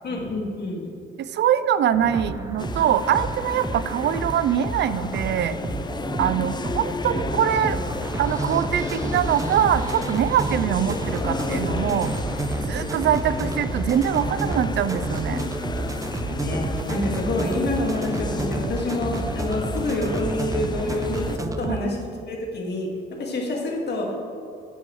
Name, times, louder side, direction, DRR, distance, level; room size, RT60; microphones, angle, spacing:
voice 1, 0.0-0.8 6.5-6.6 16.2-22.0 22.3-22.9 23.2-24.2, left 2 dB, 60° left, -1 dB, 2.0 m, -27 dB
voice 2, 1.2-5.6 6.2-7.8 8.2-12.1 12.7-15.5 21.7-21.8, right 9 dB, 65° right, 14 dB, 0.4 m, -23 dB
sound 1, 1.9-21.8, right 2 dB, 15° right, 0.6 m, -30 dB
sound 2, 2.6-21.4, left 3 dB, 20° left, 0.5 m, -33 dB
10.0 x 7.6 x 3.1 m, 2.5 s
cardioid pair, 90°, 20 cm